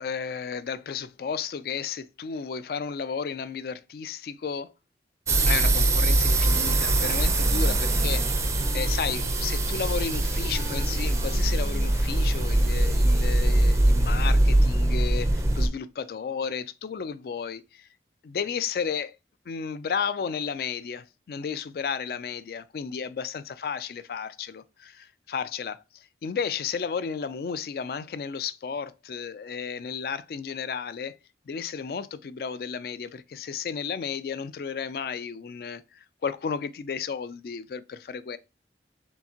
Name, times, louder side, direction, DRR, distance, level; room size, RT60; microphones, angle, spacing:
voice 1, 0.0-4.7 5.5-8.3 8.7-17.9 18.2-19.2 19.5-31.2 31.5-38.4, left 6 dB, 55° left, 0.3 m, -33 dB
sound 1, 5.3-15.7, right 1 dB, 15° right, 0.4 m, -22 dB
Wind instrument woodwind instrument, 6.6-12.5, equal, 30° left, 1.1 m, -45 dB
4.5 x 3.5 x 2.8 m
head